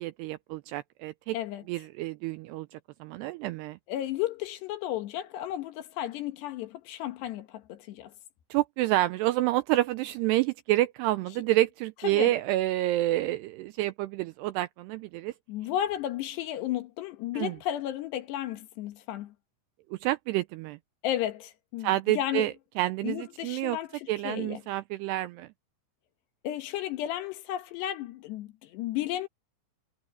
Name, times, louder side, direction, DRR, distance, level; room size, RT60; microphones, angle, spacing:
voice 1, 0.0-1.4 1.7-3.8 8.5-15.3 17.3-17.5 20.0-20.8 21.8-23.8 24.1-25.5, right 16 dB, 85° right, 2.4 m, -28 dB
voice 2, 1.3-1.6 3.9-8.1 12.0-12.4 15.5-19.3 21.0-22.5 23.0-24.6 26.4-29.3, left 12 dB, 70° left, 3.3 m, -33 dB
omnidirectional pair, 5.3 m